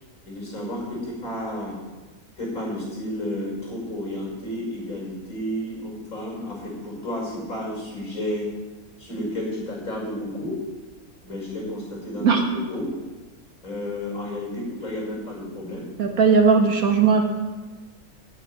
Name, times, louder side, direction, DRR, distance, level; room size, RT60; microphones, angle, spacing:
voice 1, 0.2-1.8 2.4-8.5 9.0-10.6 11.2-12.9 13.6-15.9, left 1 dB, 70° left, -3 dB, 5.9 m, -31 dB
voice 2, 16.0-17.2, right 5 dB, 75° right, 3 dB, 2.0 m, -17 dB
9.1 x 9.0 x 9.5 m, 1.2 s
omnidirectional pair, 1.5 m